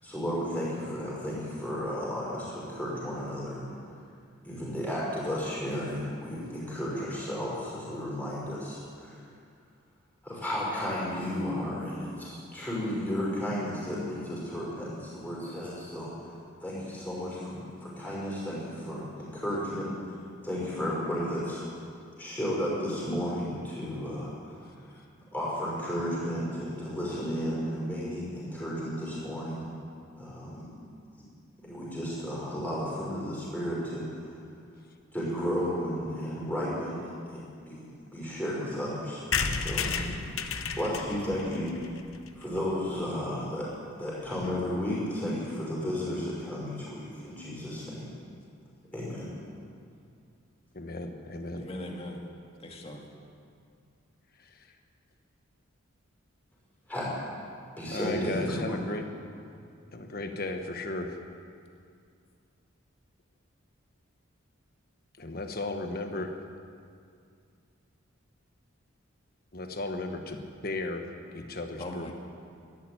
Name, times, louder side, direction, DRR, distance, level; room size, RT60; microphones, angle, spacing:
voice 1, 0.0-3.7 4.4-9.2 10.2-16.1 16.6-19.9 20.4-21.6 22.2-24.3 25.3-29.6 30.2-30.7 31.6-34.3 35.1-37.9 38.1-41.9 42.3-43.7 44.0-48.1 48.9-49.3 56.9-57.1 57.8-58.9, equal, 10° left, -6 dB, 5.4 m, -33 dB
sound 1, 39.3-43.0 43.4-43.5 43.7-43.8 44.0-44.1 44.3-44.6, left 5 dB, 75° left, 0.9 m, -33 dB
voice 2, 50.7-51.7 54.4-54.7 57.9-59.0 59.9-61.1 65.2-66.3 69.5-71.1 71.3-72.1, left 2 dB, 45° left, 5 dB, 1.3 m, -35 dB
voice 3, 51.6-52.2 52.6-53.1 71.8-72.1, left 1 dB, 30° left, 1 dB, 1.8 m, -39 dB
13.5 x 11.5 x 9.2 m, 2.3 s
head